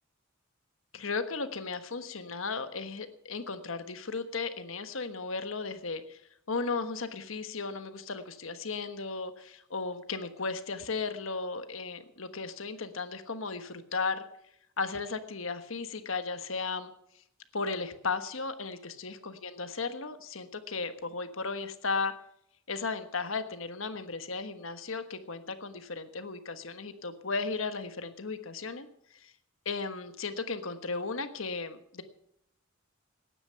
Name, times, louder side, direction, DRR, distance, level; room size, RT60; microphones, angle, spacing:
voice 1, 0.9-6.2 6.5-14.2 14.8-16.9 17.5-22.1 22.7-28.9 29.2-29.3 29.6-32.0, left 4 dB, 70° left, 10 dB, 1.4 m, -35 dB
18.0 x 9.9 x 5.8 m, 0.72 s
head